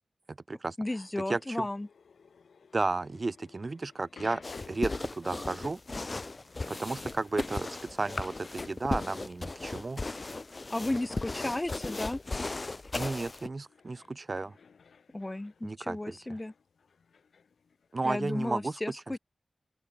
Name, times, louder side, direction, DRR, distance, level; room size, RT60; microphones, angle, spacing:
voice 1, 0.8-1.9 10.7-12.2 15.1-16.5 18.0-19.2, left 1 dB, 25° left, 1.8 m, -34 dB
sound 1, 1.0-18.5, left 5 dB, 90° left, 7.9 m, -58 dB
voice 2, 1.3-1.7 2.7-4.4 4.7-5.8 6.7-10.0 12.9-14.5 15.6-16.2 17.9-18.8, right 3 dB, 45° right, 1.0 m, -33 dB
sound 2, 4.4-13.5, left 3 dB, 40° left, 0.5 m, -37 dB
open air
cardioid pair, 55°, 0 cm